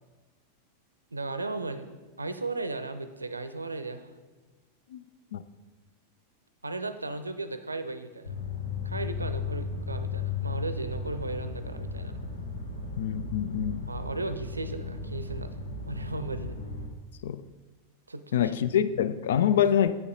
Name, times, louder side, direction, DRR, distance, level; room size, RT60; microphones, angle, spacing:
voice 1, 1.1-1.9 2.2-4.1 6.6-8.3 8.8-12.1 13.9-15.5 15.8-16.6 18.1-18.5, right 2 dB, 80° right, 0.5 m, -35 dB
sound 1, 8.2-16.9, left 4 dB, 75° left, 1.1 m, -35 dB
voice 2, 13.0-13.9 17.2-17.4 18.3-19.9, left 9 dB, 60° left, 0.3 m, -25 dB
8.4 x 6.8 x 3.8 m
figure-of-eight pair, 90°, 0 cm